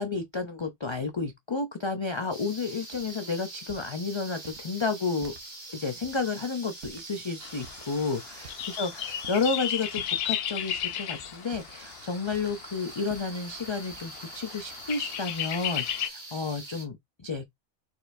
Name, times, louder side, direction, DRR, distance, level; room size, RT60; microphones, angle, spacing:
voice 1, 0.0-5.3 5.7-17.5, left 4 dB, 40° left, 0.4 m, -31 dB
sound 1, 2.3-16.8, right 2 dB, 40° right, 1.5 m, -45 dB
sound 2, 2.9-3.1 3.6-3.9 4.4-4.7 5.2-5.4 6.0-6.2 6.8-7.2 7.6-7.9 8.4-8.7 9.2-9.5 9.9-10.3 10.7-11.0 11.5-11.9 12.3-12.6 13.0-13.4 13.9-14.2, right 7 dB, 75° right, 1.1 m, -49 dB
sound 3, 7.4-16.1, left 10 dB, 65° left, 0.7 m, -35 dB
4.3 x 4.2 x 2.6 m
omnidirectional pair, 1.2 m